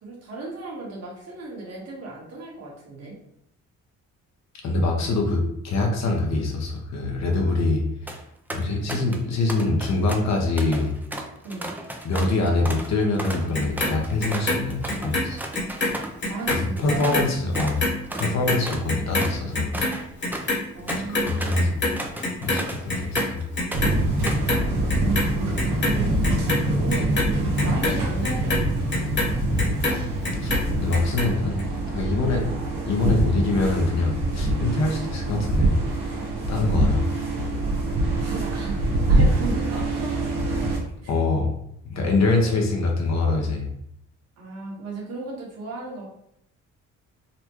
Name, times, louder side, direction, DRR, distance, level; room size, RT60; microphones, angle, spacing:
voice 1, 0.0-3.1 11.4-11.7 16.3-17.3 20.7-21.8 24.2-24.9 25.7-27.3 27.5-28.9 38.1-40.1 41.0-41.1 42.0-42.6 44.4-46.1, right 3 dB, 55° right, -3 dB, 1.5 m, -36 dB
voice 2, 4.6-7.8 8.5-10.9 12.0-15.4 16.8-17.8 18.2-19.7 20.9-21.8 22.4-23.4 30.4-31.6 31.9-32.4 32.9-35.7 36.5-37.0 41.1-41.5 41.8-43.7, left 2 dB, 65° left, 1 dB, 0.9 m, -24 dB
sound 1, 7.8-8.2 8.5-9.2 9.5-17.3 17.5-17.8 18.1-23.4 23.7-24.5, right 1 dB, 5° right, 0.4 m, -34 dB
Clock, 13.5-15.9 16.2-22.6 22.9-23.9 24.2-25.2 25.6-30.0 30.2-31.2 31.6-31.7, left 2 dB, 35° left, 1.2 m, -26 dB
sound 2, 23.7-40.8, right 1 dB, 85° right, 1.0 m, -24 dB
4.0 x 2.2 x 3.0 m, 0.74 s
cardioid pair, 90°, 30 cm